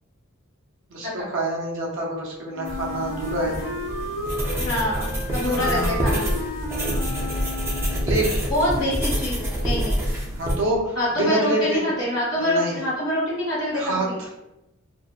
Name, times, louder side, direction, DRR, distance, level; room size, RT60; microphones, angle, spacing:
voice 1, 0.9-3.5 5.5-5.9 8.0-8.5 10.3-11.8 12.4-12.8 13.7-14.3, right 1 dB, 65° right, -2 dB, 0.6 m, -27 dB
Wind instrument woodwind instrument, 2.5-8.3, left 1 dB, 80° left, 0.5 m, -32 dB
sound 1, 2.6-10.5, equal, 10° right, 0.4 m, -27 dB
voice 2, 4.6-6.3 8.5-10.0 10.9-14.1, left 1 dB, 65° left, -9 dB, 1.1 m, -25 dB
2.6 x 2.1 x 2.3 m, 0.93 s
head